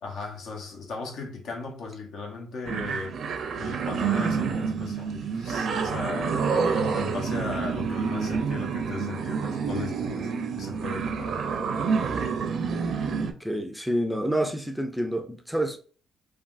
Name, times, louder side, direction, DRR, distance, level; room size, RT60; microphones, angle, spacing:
voice 1, 0.0-3.2 3.6-10.3 10.5-11.4, left 4 dB, 75° left, 0.8 m, -37 dB
sound 1, 2.7-13.3, right 5 dB, 60° right, 0.5 m, -28 dB
voice 2, 13.1-15.8, right 1 dB, ahead, 0.4 m, -28 dB
3.3 x 2.3 x 2.5 m
cardioid pair, 90°, 0 cm